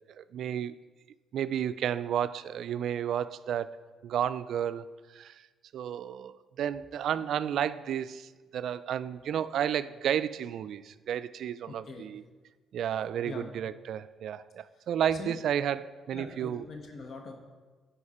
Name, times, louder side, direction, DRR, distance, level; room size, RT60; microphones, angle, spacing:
voice 1, 0.2-0.7 1.3-4.9 5.1-5.4 5.7-12.2 12.7-16.6, right 9 dB, 70° right, 15 dB, 0.3 m, -32 dB
voice 2, 11.7-12.1 13.2-13.4 15.1-15.3 16.1-17.3, left 4 dB, 55° left, 3 dB, 1.2 m, -42 dB
11.5 x 5.2 x 4.2 m, 1.3 s
cardioid pair, 90°, 0 cm